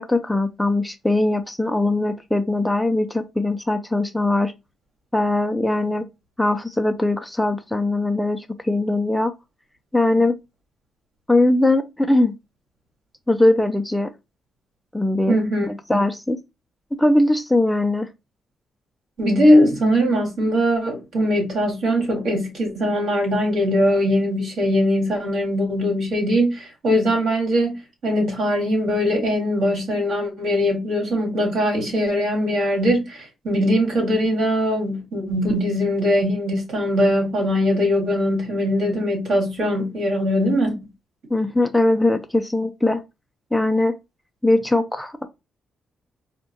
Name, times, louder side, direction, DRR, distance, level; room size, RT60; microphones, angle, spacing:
voice 1, 0.0-4.5 5.1-6.1 6.4-9.3 9.9-10.3 11.3-12.3 13.3-14.1 14.9-15.4 15.9-16.4 17.0-18.1 41.3-43.0 43.5-43.9 44.4-45.3, left 2 dB, 5° left, 0.3 m, -20 dB
voice 2, 15.3-15.7 19.2-27.8 28.0-40.8, equal, 65° right, 2.0 m, -21 dB
4.4 x 2.1 x 2.8 m
cardioid pair, 125°, 0 cm